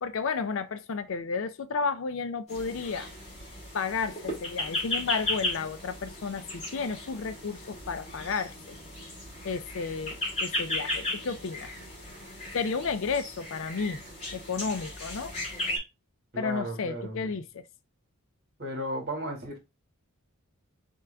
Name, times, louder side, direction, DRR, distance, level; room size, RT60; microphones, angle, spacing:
voice 1, 0.0-3.1 3.7-8.8 9.4-11.7 12.5-14.0 14.3-15.4 16.4-17.6, left 5 dB, 60° left, 0.4 m, -32 dB
sound 1, 2.5-15.8, left 2 dB, 30° left, 2.1 m, -36 dB
voice 2, 16.3-17.3 18.6-19.6, equal, 50° right, 2.0 m, -34 dB
4.6 x 3.4 x 3.4 m
head